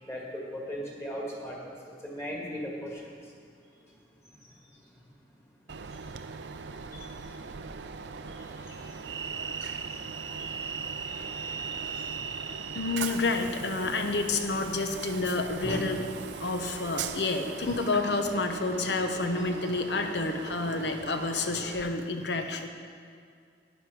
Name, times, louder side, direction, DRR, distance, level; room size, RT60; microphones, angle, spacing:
voice 1, 0.0-1.7 2.0-3.1 4.4-4.5 6.9-7.1 8.3-8.8 9.9-10.8 11.1-12.6 15.6-15.9 16.6-16.8, equal, 15° left, -2 dB, 1.8 m, -40 dB
Train, 5.7-21.8, right 5 dB, 80° right, 0.5 m, -38 dB
voice 2, 12.7-16.1 16.4-22.7, left 3 dB, 75° left, 6 dB, 0.9 m, -29 dB
11.5 x 9.4 x 4.8 m, 2.3 s
head